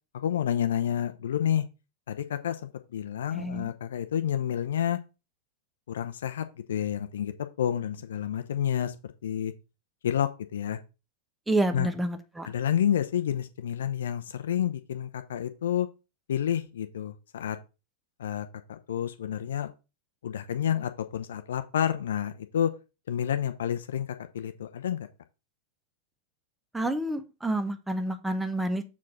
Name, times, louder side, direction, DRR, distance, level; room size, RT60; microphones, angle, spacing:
voice 1, 0.1-1.7 2.1-5.0 5.9-7.3 7.6-9.5 10.0-10.8 11.7-11.9 12.5-15.9 16.3-17.6 18.2-19.7 20.2-22.7 23.1-24.1 24.3-25.1, left 9 dB, 65° left, 0.8 m, -29 dB
voice 2, 3.3-3.7 11.5-12.5 26.7-28.8, right 1 dB, 5° right, 1.1 m, -29 dB
7.3 x 4.6 x 4.7 m
figure-of-eight pair, 90°, 0 cm